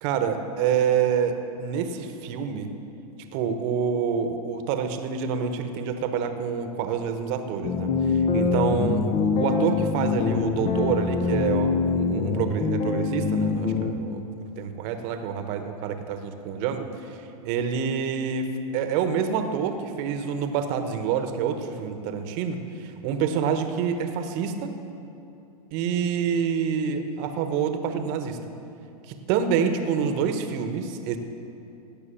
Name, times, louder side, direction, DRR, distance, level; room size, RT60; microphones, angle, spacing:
voice 1, 0.0-2.7 3.3-14.2 14.6-24.7 25.7-28.4 29.1-31.2, right 7 dB, 45° right, 7 dB, 1.3 m, -27 dB
sound 1, 7.6-13.9, left 4 dB, 30° left, 1.0 m, -24 dB
17.5 x 6.8 x 7.0 m, 2.7 s
hypercardioid pair, 105°, 20 cm